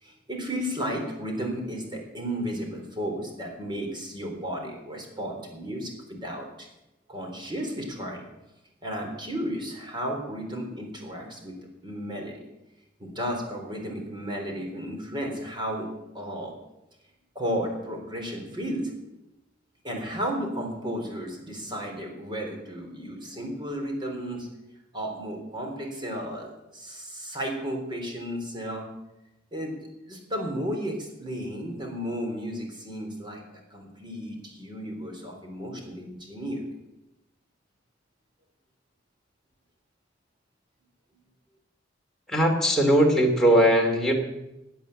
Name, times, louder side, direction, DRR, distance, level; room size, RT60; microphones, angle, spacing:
voice 1, 0.0-6.7 7.1-8.3 8.8-12.3 13.0-15.9 16.1-16.5 17.4-18.9 19.8-24.5 24.9-28.9 29.5-29.7 30.1-33.4 33.7-36.6, equal, 25° right, 2 dB, 3.6 m, -33 dB
voice 2, 42.3-44.1, equal, 5° left, -1 dB, 2.6 m, -20 dB
16.5 x 9.5 x 7.2 m, 0.93 s
head